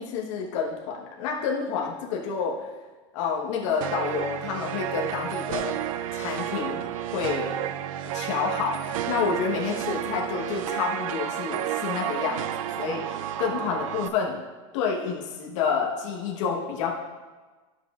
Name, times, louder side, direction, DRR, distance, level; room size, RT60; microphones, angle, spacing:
voice 1, 0.0-2.7 3.1-5.8 6.1-6.8 7.1-7.6 8.1-12.4 12.8-14.4 14.7-16.9, left 6 dB, 65° left, -2 dB, 1.1 m, -29 dB
sound 1, 3.8-14.1, right 11 dB, 85° right, 0.4 m, -31 dB
11.0 x 7.3 x 2.4 m, 1.3 s
supercardioid pair, 135°, 17 cm